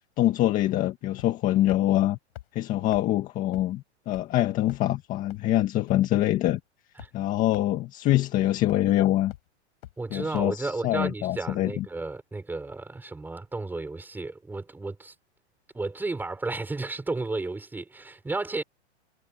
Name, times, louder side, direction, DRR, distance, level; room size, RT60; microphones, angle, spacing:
voice 1, 0.2-2.2 2.6-6.6 7.1-9.3 10.1-11.8, left 14 dB, 25° left, 1.8 m, -24 dB
sound 1, 1.2-1.4 1.7-1.8 2.4-2.5 2.9-3.0 3.5-3.6 4.1-4.2 4.7-4.9 5.3-5.4 5.9-6.0 6.5-6.6 7.0-7.1 7.5-7.6 8.1-8.2 8.7-8.9 9.3-9.4 9.8-9.9 10.4-10.5, left 15 dB, 55° left, 5.2 m, -42 dB
voice 2, 10.0-15.1 15.7-18.6, right 3 dB, 5° right, 6.4 m, -33 dB
hypercardioid pair, 160°, 35 cm